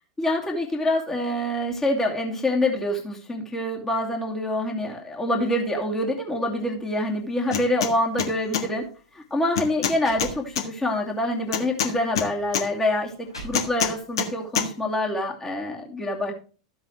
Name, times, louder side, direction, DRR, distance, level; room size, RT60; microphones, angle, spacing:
voice 1, 0.2-8.9 9.1-16.3, left 1 dB, 15° left, 0 dB, 2.6 m, -26 dB
sound 1, 7.5-7.9 8.2-8.6 9.6-10.7 11.5-12.7 13.5-14.3 14.6-14.7, left 8 dB, 65° left, 1.6 m, -25 dB
sound 2, 8.8-8.9 9.6-9.7 9.9-10.9 11.4-11.6 12.4-12.5 13.0-14.1, right 2 dB, 85° left, 6.3 m, -42 dB
13.5 x 8.1 x 3.1 m, 0.37 s
figure-of-eight pair, 95°, 3 cm